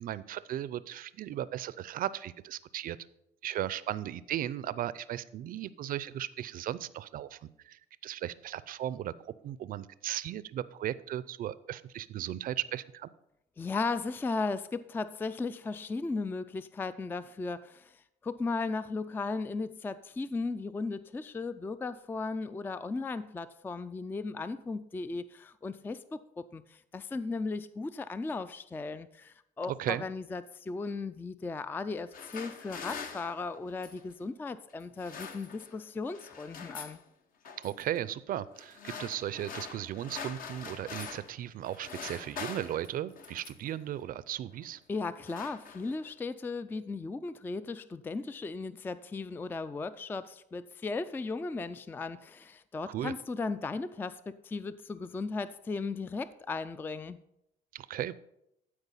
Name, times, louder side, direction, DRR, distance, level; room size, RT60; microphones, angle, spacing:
voice 1, 0.0-3.0 3.4-9.1 9.4-13.1 29.7-30.0 37.6-44.8 52.8-53.1 57.7-58.1, right 12 dB, 55° right, 17 dB, 0.5 m, -36 dB
voice 2, 13.6-37.0 44.9-57.2, left 3 dB, 10° left, 14 dB, 0.3 m, -36 dB
sound 1, 31.9-34.1 34.8-35.8 36.1-37.0 37.4-37.8 38.5-41.4 41.6-43.7 44.5-44.7 45.0-46.1, left 6 dB, 55° left, 1.0 m, -44 dB
12.0 x 4.9 x 5.5 m, 0.81 s
cardioid pair, 110°, 17 cm